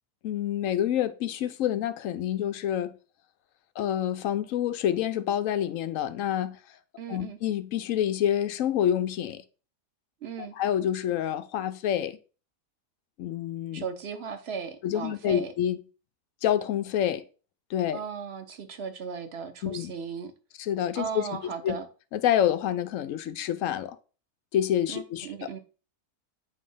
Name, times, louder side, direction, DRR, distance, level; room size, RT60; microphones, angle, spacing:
voice 1, 0.2-2.9 3.8-6.6 7.1-9.4 10.4-12.2 13.2-13.8 14.8-15.8 16.4-17.2 17.7-18.0 19.6-19.9 20.6-21.7 22.1-24.0 24.5-25.6, left 10 dB, 65° left, 0.9 m, -27 dB
voice 2, 7.0-7.4 10.2-10.5 13.7-15.5 17.9-20.3 20.9-21.9 24.9-25.6, right 6 dB, 50° right, 1.0 m, -36 dB
8.5 x 3.1 x 5.5 m
omnidirectional pair, 1.7 m